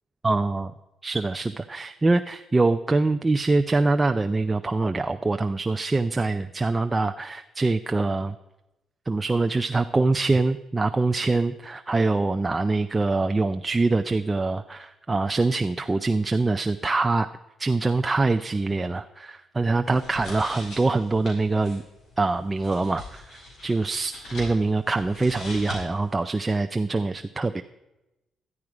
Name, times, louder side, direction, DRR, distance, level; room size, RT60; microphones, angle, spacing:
voice 1, 0.2-0.7 1.0-8.3 9.1-17.3 17.6-21.8 22.2-27.6, right 3 dB, 20° right, 8 dB, 0.4 m, -24 dB
sound 1, 19.8-26.2, left 1 dB, 60° left, 4.9 m, -42 dB
12.5 x 10.5 x 4.9 m, 0.97 s
cardioid pair, 90°, 0 cm